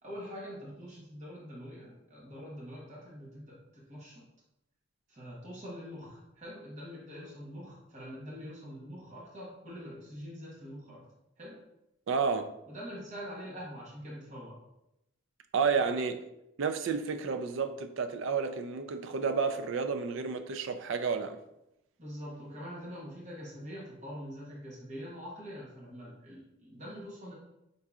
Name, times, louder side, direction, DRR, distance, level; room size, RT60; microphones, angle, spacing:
voice 1, 0.0-4.2 5.1-11.0 11.4-11.6 12.7-14.6 15.7-15.9 22.0-27.3, equal, 35° right, 1.1 m, -44 dB
voice 2, 12.1-12.5 15.5-16.2 16.6-21.4, right 5 dB, 60° right, 0.3 m, -31 dB
5.3 x 3.7 x 2.4 m
head